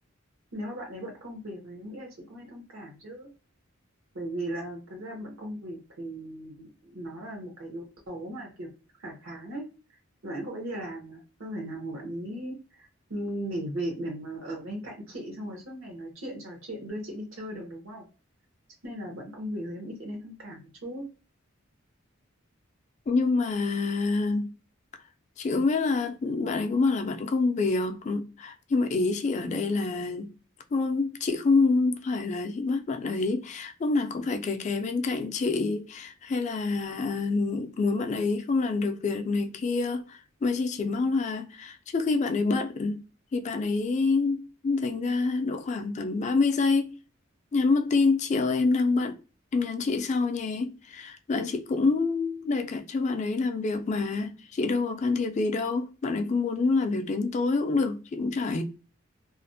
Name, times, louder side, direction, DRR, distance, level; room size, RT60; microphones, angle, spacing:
voice 1, 0.5-3.3 4.1-8.7 9.0-9.6 10.2-18.1 18.8-21.0, right 1 dB, 80° right, 0.8 m, -37 dB
voice 2, 23.1-24.5 25.4-30.3 30.7-43.0 43.3-46.9 47.5-49.2 49.5-58.6, left 3 dB, 35° left, 0.3 m, -27 dB
2.4 x 2.0 x 2.5 m
head